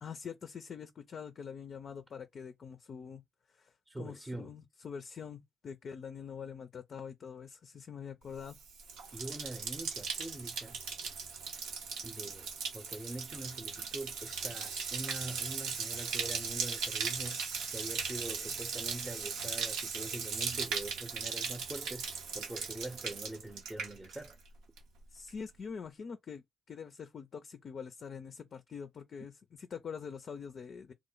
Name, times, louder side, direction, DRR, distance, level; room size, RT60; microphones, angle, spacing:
voice 1, 0.0-3.2 3.5-8.6 25.1-29.3 29.6-30.9, left 6 dB, 55° left, 0.4 m, -45 dB
voice 2, 3.9-4.5 9.1-10.8 12.0-24.4, right 2 dB, 15° right, 0.6 m, -44 dB
Bathtub (filling or washing), 8.4-24.5 24.8-25.3, right 5 dB, 85° right, 0.7 m, -38 dB
3.0 x 2.1 x 3.8 m
supercardioid pair, 50°, 0 cm